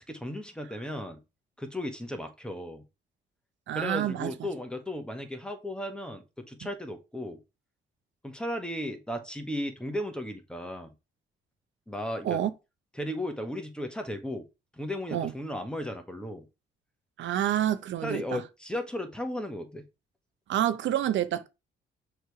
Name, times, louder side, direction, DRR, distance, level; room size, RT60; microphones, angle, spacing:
voice 1, 0.1-1.2 1.6-2.9 3.7-7.4 8.2-10.9 11.9-12.4 13.0-14.5 14.8-16.4 18.0-19.9, left 1 dB, 5° left, 1.4 m, -35 dB
voice 2, 3.7-4.5 12.2-12.5 15.1-15.3 17.2-18.4 20.5-21.5, right 11 dB, 70° right, 0.6 m, -28 dB
6.5 x 3.3 x 4.7 m
cardioid pair, 90°, 20 cm